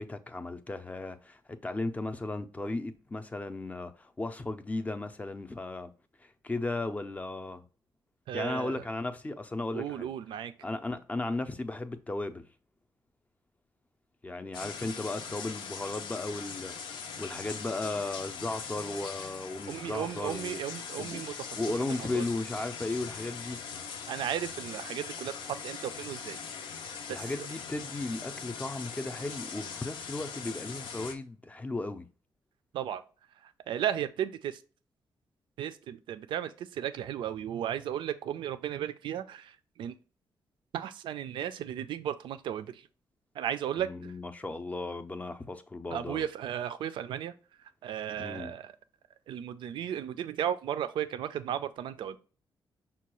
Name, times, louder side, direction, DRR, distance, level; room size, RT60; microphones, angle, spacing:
voice 1, 0.0-5.9 6.2-7.6 8.3-10.1 10.6-12.4 14.2-20.6 21.0-21.2 21.6-23.6 27.1-32.1 43.8-46.3 48.2-48.5, left 2 dB, 15° left, 0.4 m, -35 dB
voice 2, 8.3-8.8 9.7-10.5 19.7-21.6 22.0-22.2 24.1-26.4 27.1-27.5 32.7-33.0 33.7-34.6 35.6-40.0 40.7-42.8 43.4-44.1 45.9-47.3 47.8-48.7 49.3-52.2, right 10 dB, 85° right, 0.4 m, -35 dB
sound 1, 14.5-31.2, left 6 dB, 90° left, 0.5 m, -41 dB
5.5 x 2.3 x 3.0 m
cardioid pair, 105°, 8 cm